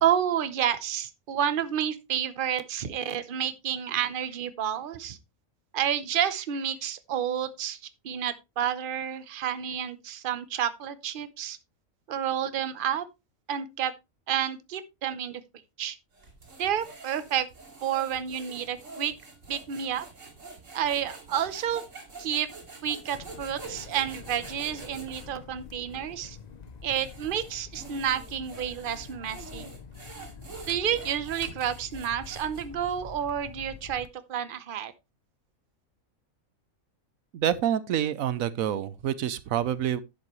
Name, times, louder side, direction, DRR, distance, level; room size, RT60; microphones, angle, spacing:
voice 1, 0.0-5.2 5.7-7.8 8.0-11.6 12.1-13.0 13.5-13.9 14.3-15.4 15.8-16.0 16.6-17.5 17.8-19.1 19.5-20.1 20.7-21.8 22.2-22.5 22.8-26.4 26.8-29.7 30.7-34.9, right 9 dB, 45° right, 0.9 m, -30 dB
sound 1, 16.1-25.3 25.9-26.0 26.7-32.9, right 3 dB, 65° right, 2.8 m, -46 dB
sound 2, 23.1-34.1, left 6 dB, 40° left, 0.6 m, -46 dB
voice 2, 37.3-40.0, right 10 dB, 85° right, 1.1 m, -27 dB
11.0 x 7.6 x 3.1 m
omnidirectional pair, 1.4 m